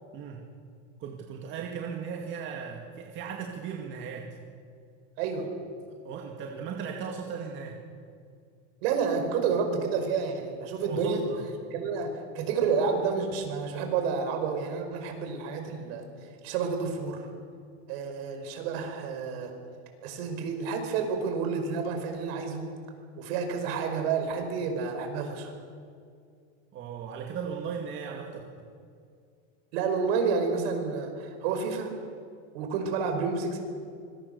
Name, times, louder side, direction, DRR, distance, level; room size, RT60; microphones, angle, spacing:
voice 1, 0.1-0.5 1.0-4.4 6.0-7.8 10.8-11.4 26.7-28.7, right 6 dB, 35° right, 1 dB, 2.2 m, -37 dB
voice 2, 5.2-5.5 8.8-11.2 11.7-16.0 16.4-17.3 17.9-19.5 20.0-22.6 23.2-25.5 29.7-31.9 32.5-33.6, right 5 dB, 65° right, 5 dB, 5.1 m, -29 dB
25.5 x 21.5 x 6.9 m, 2.3 s
supercardioid pair, 160°, 33 cm